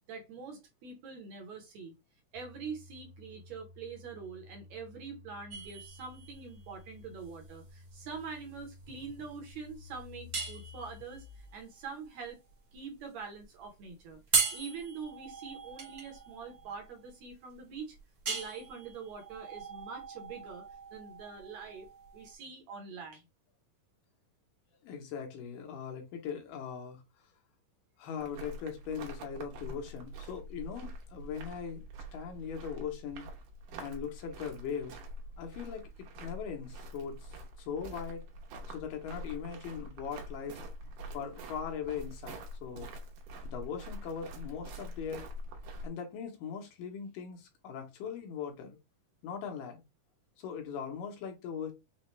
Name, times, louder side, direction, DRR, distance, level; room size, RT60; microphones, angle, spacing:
voice 1, 0.1-1.9 2.3-12.4 12.7-18.0 18.3-20.7 20.9-21.9 22.1-23.2, right 5 dB, 70° right, 1.9 m, -44 dB
sound 1, 2.3-11.6, left 4 dB, 60° left, 2.3 m, -53 dB
sound 2, 5.5-22.3, right 4 dB, 50° right, 1.1 m, -39 dB
voice 2, 24.8-27.0 28.0-31.8 32.1-33.3 33.8-35.0 35.4-37.3 37.6-38.2 38.7-40.6 41.1-42.9 43.4-45.3 45.8-48.8 49.2-49.8 50.4-51.7, left 7 dB, 85° left, 2.7 m, -40 dB
sound 3, 28.2-45.9, equal, 90° right, 2.6 m, -45 dB
6.2 x 2.2 x 3.1 m
omnidirectional pair, 3.8 m